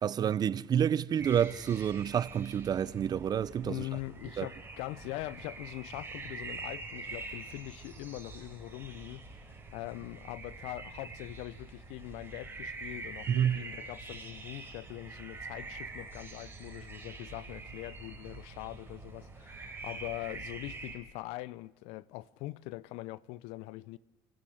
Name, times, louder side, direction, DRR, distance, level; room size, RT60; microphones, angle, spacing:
voice 1, 0.0-3.8 4.4-4.5 13.3-13.6, right 9 dB, 40° right, 0.7 m, -29 dB
sound 1, 1.2-21.0, right 3 dB, 20° right, 5.0 m, -45 dB
voice 2, 3.6-24.0, left 18 dB, 75° left, 0.7 m, -42 dB
30.0 x 13.5 x 8.0 m
supercardioid pair, 90°, 10 cm